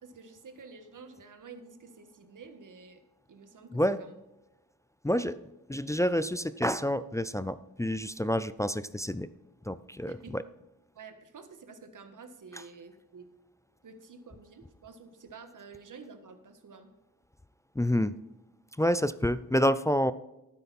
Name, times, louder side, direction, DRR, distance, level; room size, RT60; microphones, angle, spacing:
voice 1, 0.0-3.0 3.3-4.1 10.1-10.4 10.9-13.3 13.8-16.9, right 4 dB, 60° right, 8 dB, 1.6 m, -50 dB
voice 2, 5.0-5.4 5.7-9.3 9.7-10.4 12.5-12.6 17.8-18.1 18.8-20.1, equal, 10° left, 14 dB, 0.4 m, -28 dB
12.5 x 9.4 x 4.2 m, 0.99 s
wide cardioid pair, 95°, 35 cm